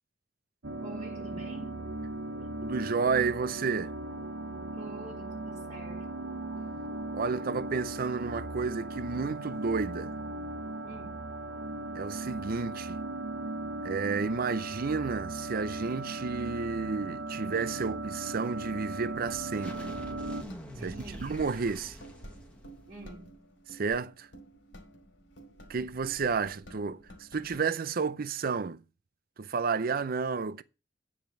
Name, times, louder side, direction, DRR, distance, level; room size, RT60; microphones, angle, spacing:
sound 1, 0.6-20.4, right 2 dB, 85° right, 1.2 m, -38 dB
voice 1, 0.8-1.8 2.4-2.5 4.8-6.1 10.8-11.2 20.8-21.4 22.9-23.4, right 2 dB, 30° right, 1.9 m, -46 dB
voice 2, 2.6-3.9 7.1-10.1 11.9-13.0 13.8-19.9 20.8-20.9 21.2-22.0 23.7-24.3 25.7-28.8 29.4-30.6, right 5 dB, 50° right, 0.5 m, -31 dB
sound 2, 19.6-23.3, equal, 5° left, 1.4 m, -46 dB
sound 3, 20.3-27.6, right 1 dB, 70° left, 2.5 m, -52 dB
9.1 x 5.0 x 7.8 m
head